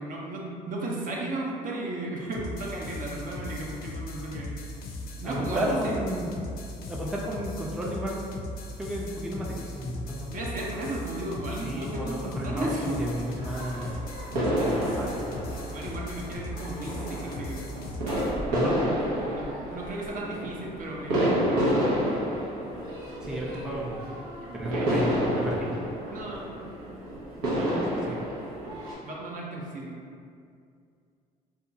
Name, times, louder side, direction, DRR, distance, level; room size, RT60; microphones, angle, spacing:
voice 1, 0.0-4.5 5.2-6.0 10.3-13.0 15.7-18.0 19.3-22.2 24.4-25.0 26.0-26.7 29.0-30.0, right 2 dB, 45° right, -3 dB, 0.6 m, -35 dB
sound 1, 2.3-18.3, left 2 dB, 55° left, 0.4 m, -38 dB
voice 2, 5.2-6.3 6.9-8.3 8.8-10.3 11.6-13.9 14.4-15.4 18.5-18.8 23.2-24.0 24.5-25.8 27.6-28.3, equal, 5° right, -3 dB, 0.4 m, -33 dB
sound 2, 12.5-28.9, equal, 90° right, 0.7 m, -30 dB
2.7 x 2.3 x 2.6 m, 2.3 s
supercardioid pair, 65°, 19 cm